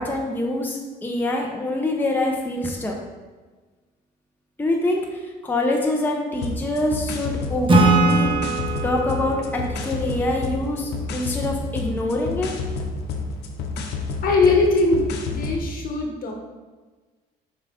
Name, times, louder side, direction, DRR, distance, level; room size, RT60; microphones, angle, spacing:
voice 1, 0.0-2.9 4.6-8.3 8.8-12.5, left 1 dB, 10° left, -1 dB, 0.8 m, -25 dB
sound 1, 6.3-15.6, left 3 dB, 80° left, 0.8 m, -30 dB
Acoustic guitar / Strum, 7.7-11.1, right 2 dB, 30° right, 1.2 m, -22 dB
voice 2, 14.2-16.3, left 3 dB, 55° left, 1 dB, 1.3 m, -20 dB
5.5 x 4.7 x 4.1 m, 1.3 s
cardioid pair, 110°, 17 cm